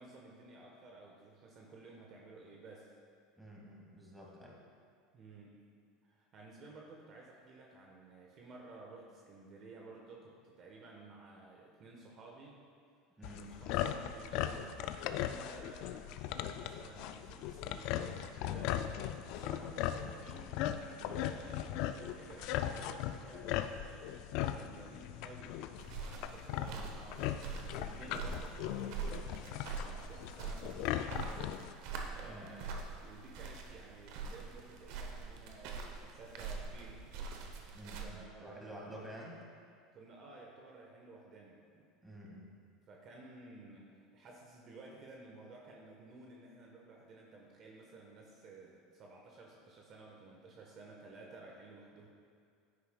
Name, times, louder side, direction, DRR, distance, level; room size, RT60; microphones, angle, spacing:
voice 1, 0.0-2.9 5.1-5.6 6.0-12.6 13.3-18.8 19.3-37.1 38.0-39.0 39.9-41.9 42.9-52.1, right 3 dB, 45° right, -1 dB, 1.2 m, -54 dB
voice 2, 3.4-4.6 13.2-13.4 32.2-32.7 37.7-39.4 42.0-42.5, right 1 dB, 5° right, -3 dB, 2.1 m, -50 dB
sound 1, 13.2-31.7, left 11 dB, 65° left, 0.4 m, -39 dB
sound 2, 25.8-38.1, right 4 dB, 65° right, 0.9 m, -44 dB
10.0 x 8.6 x 2.3 m, 2.3 s
hypercardioid pair, 90°, 0 cm